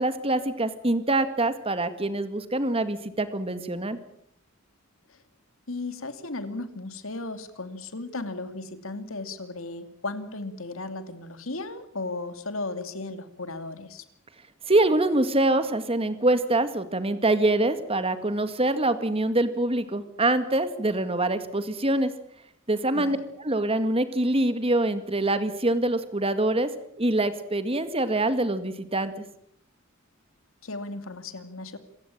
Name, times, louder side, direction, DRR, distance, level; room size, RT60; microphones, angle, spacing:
voice 1, 0.0-4.0 14.7-22.1 22.7-23.2 23.4-26.7 27.0-29.1, right 2 dB, 30° right, 11 dB, 2.0 m, -24 dB
voice 2, 5.7-14.0 22.9-23.2 30.6-31.8, left 2 dB, 75° left, 9 dB, 2.6 m, -35 dB
27.0 x 16.0 x 8.8 m, 0.72 s
head